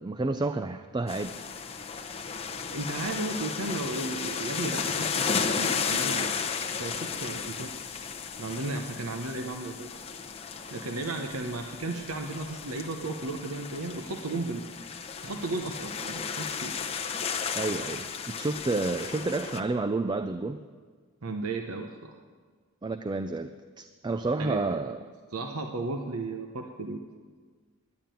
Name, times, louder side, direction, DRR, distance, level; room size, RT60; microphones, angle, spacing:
voice 1, 0.0-1.4 17.5-20.6 22.8-25.0, right 3 dB, 20° right, 10 dB, 0.3 m, -30 dB
sound 1, 1.1-19.6, left 6 dB, 25° left, 0.8 m, -34 dB
voice 2, 2.5-6.4 6.8-7.7 8.4-9.9 10.7-14.6 15.2-16.7 21.2-22.1 24.4-24.8 25.3-27.0, right 2 dB, 75° right, 4 dB, 0.9 m, -34 dB
10.5 x 10.0 x 9.1 m, 1.5 s
head